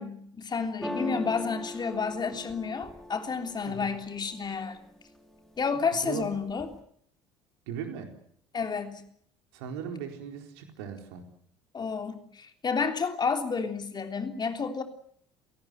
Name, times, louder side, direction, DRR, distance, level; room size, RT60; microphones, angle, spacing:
voice 1, 0.0-4.8 5.6-6.7 8.5-9.0 11.7-14.8, left 5 dB, 30° left, 6 dB, 3.3 m, -31 dB
sound 1, 0.8-4.7 5.1-5.7 6.0-6.8, left 1 dB, 5° left, 4.5 m, -39 dB
voice 2, 7.7-8.1 9.5-11.3, right 8 dB, 65° right, 5 dB, 4.3 m, -38 dB
29.0 x 18.5 x 7.9 m, 0.66 s
figure-of-eight pair, 60°, 14 cm